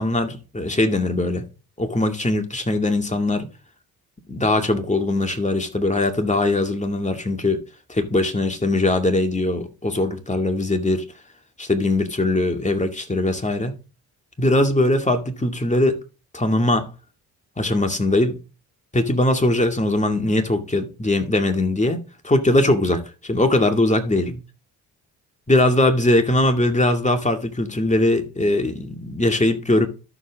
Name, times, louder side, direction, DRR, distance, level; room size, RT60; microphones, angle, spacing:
voice 1, 0.0-1.5 1.8-3.5 4.3-7.6 7.9-11.1 11.6-13.7 14.4-16.0 16.3-16.9 17.6-18.4 18.9-24.3 25.5-29.9, left 2 dB, 15° left, 2.3 m, -21 dB
12.5 x 7.1 x 3.6 m
hypercardioid pair, 45°, 46 cm